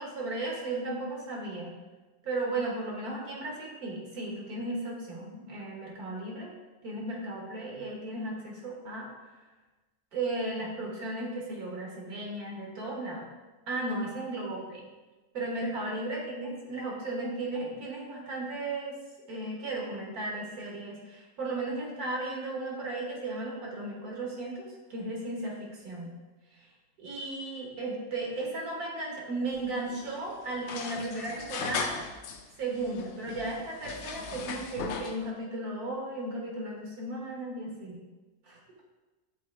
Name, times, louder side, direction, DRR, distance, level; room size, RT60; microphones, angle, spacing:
voice 1, 0.0-1.7 2.2-6.5 6.8-9.1 10.1-13.3 13.7-14.8 15.3-18.9 19.3-26.1 27.0-32.0 32.6-38.0 38.4-38.6, right 2 dB, 80° right, -2 dB, 1.9 m, -35 dB
sound 1, 29.5-32.4 32.7-35.3, left 5 dB, 75° left, 1.0 m, -38 dB
7.3 x 4.1 x 3.4 m, 1.2 s
omnidirectional pair, 1.6 m